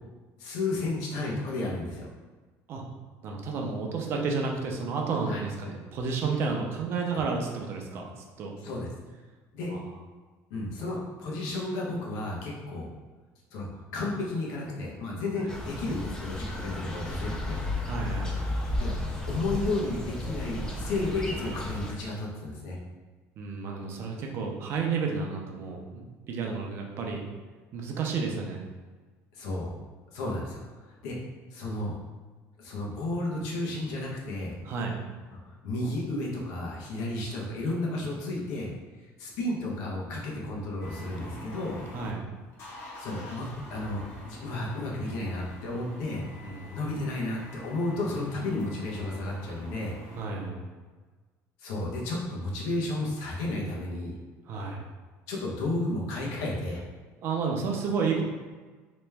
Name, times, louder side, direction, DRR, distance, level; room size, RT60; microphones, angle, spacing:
voice 1, 0.4-2.1 5.3-5.4 8.6-8.9 9.5-9.7 10.5-12.9 13.5-13.7 13.9-17.6 18.8-18.9 19.3-22.8 29.3-29.7 30.1-31.1 31.5-32.0 32.6-34.6 35.3-38.7 39.0-41.8 43.0-46.2 46.7-50.0 51.6-54.1 55.3-56.8, left 2 dB, 85° left, -3 dB, 1.0 m, -32 dB
voice 2, 3.2-8.1 8.4-8.5 9.7-9.8 17.8-18.4 23.4-27.2 27.7-28.6 34.7-35.0 37.2-37.4 41.9-42.2 46.4-46.8 50.1-50.6 54.5-54.8 57.2-58.2, right 4 dB, 40° right, 1 dB, 0.6 m, -31 dB
sound 1, 15.5-21.9, left 1 dB, 10° left, 0.4 m, -33 dB
sound 2, 40.8-42.1 42.5-50.2, left 1 dB, 50° left, 0.9 m, -45 dB
3.4 x 3.0 x 3.4 m, 1.4 s
cardioid pair, 170°, 6 cm